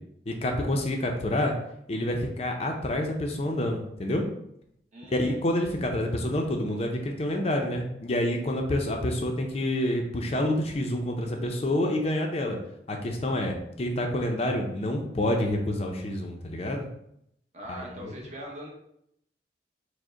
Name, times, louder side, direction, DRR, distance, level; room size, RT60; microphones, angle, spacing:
voice 1, 0.3-1.5 1.9-4.2 5.1-12.6 12.9-16.9 17.7-18.1 18.4-18.5, left 1 dB, 35° left, 2 dB, 0.5 m, -28 dB
voice 2, 4.9-5.4 17.5-18.7, equal, 40° right, -1 dB, 0.9 m, -41 dB
4.9 x 2.1 x 3.7 m, 0.75 s
head